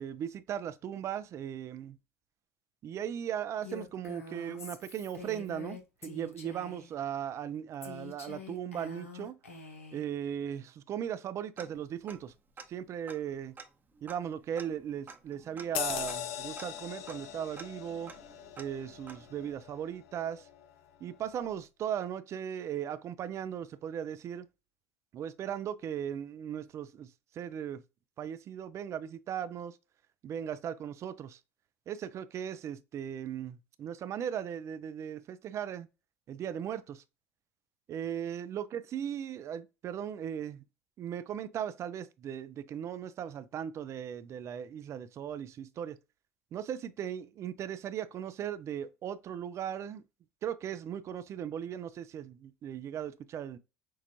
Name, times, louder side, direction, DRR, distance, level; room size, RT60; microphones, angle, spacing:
voice 1, 0.0-2.0 2.8-9.4 9.9-12.3 12.7-13.5 14.0-18.1 18.6-20.5 21.0-24.5 25.1-27.1 27.3-27.8 28.2-29.8 30.2-31.4 31.9-35.9 36.3-37.0 37.9-40.6 41.0-46.0 46.5-50.0 50.4-53.6, right 9 dB, 40° right, 0.5 m, -38 dB
Female speech woman speaking, 3.6-6.9 7.8-10.0, left 4 dB, 90° left, 0.8 m, -46 dB
Tick-tock, 11.6-12.3 12.6-12.7 13.0-19.6, right 4 dB, 25° right, 0.9 m, -51 dB
sound 1, 15.7-20.7 21.1-21.3, left 10 dB, 65° left, 0.6 m, -40 dB
6.2 x 2.4 x 2.9 m
hypercardioid pair, 70°, 7 cm